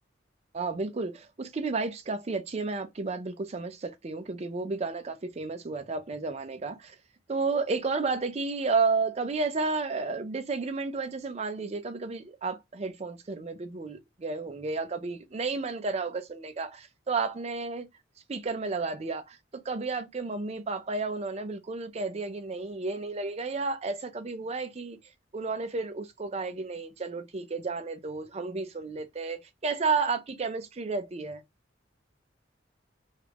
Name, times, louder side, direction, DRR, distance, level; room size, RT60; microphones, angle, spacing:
voice 1, 0.5-7.0 7.3-17.9 18.3-19.4 19.6-25.0 25.3-31.4, right 4 dB, 35° right, 0.4 m, -32 dB
3.0 x 2.4 x 3.4 m
head